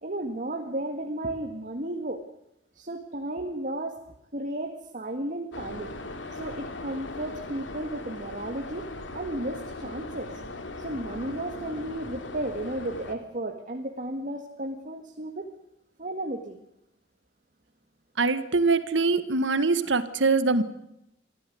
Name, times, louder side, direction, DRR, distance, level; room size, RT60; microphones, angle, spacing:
voice 1, 0.0-2.2 2.7-4.0 4.3-5.9 6.3-8.9 9.1-10.3 10.8-15.5 16.0-16.6, right 1 dB, 45° right, 4 dB, 1.9 m, -33 dB
sound 1, 5.5-13.2, left 2 dB, 80° left, 2.7 m, -39 dB
voice 2, 18.2-20.6, right 3 dB, 75° right, 12 dB, 1.7 m, -23 dB
24.5 x 14.5 x 9.4 m, 0.83 s
head